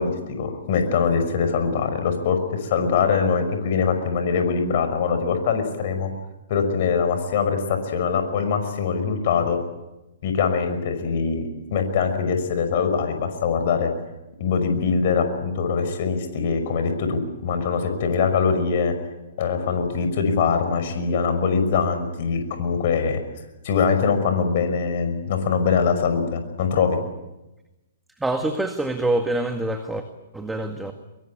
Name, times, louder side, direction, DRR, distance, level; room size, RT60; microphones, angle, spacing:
voice 1, 0.0-6.1 6.5-9.6 10.2-11.4 11.7-13.9 14.4-18.9 19.4-23.2 23.6-27.0, left 5 dB, 50° left, 7 dB, 5.7 m, -23 dB
voice 2, 28.2-30.0 30.3-30.9, right 2 dB, 5° right, 6 dB, 1.9 m, -25 dB
23.5 x 23.0 x 8.7 m, 0.99 s
figure-of-eight pair, 120°, 0 cm